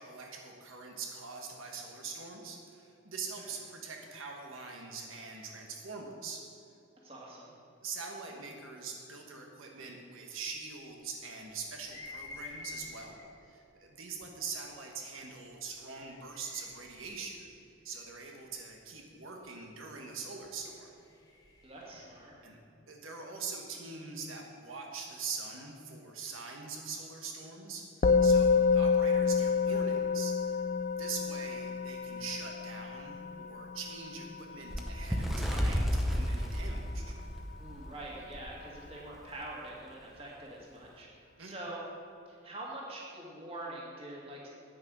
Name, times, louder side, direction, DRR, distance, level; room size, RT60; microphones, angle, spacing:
voice 1, 0.0-6.4 7.8-13.2 13.4-17.4 17.8-21.0 22.4-22.6 22.9-30.3 31.0-37.1 41.4-41.6, right 4 dB, 80° right, 1 dB, 1.3 m, -43 dB
voice 2, 7.0-7.5 21.6-22.3 37.6-41.1 41.4-41.8 42.3-44.5, right 1 dB, 30° right, -4 dB, 2.0 m, -44 dB
sound 1, 11.7-13.4 14.2-14.3 15.6-18.5 20.6-22.3, left 3 dB, 20° left, 1.6 m, -50 dB
Musical instrument, 28.0-37.6, left 5 dB, 35° left, 0.4 m, -29 dB
Bird, 34.7-37.9 38.3-38.5 38.8-39.0 39.8-39.9, equal, ahead, 0.7 m, -31 dB
9.4 x 9.3 x 6.2 m, 2.7 s
head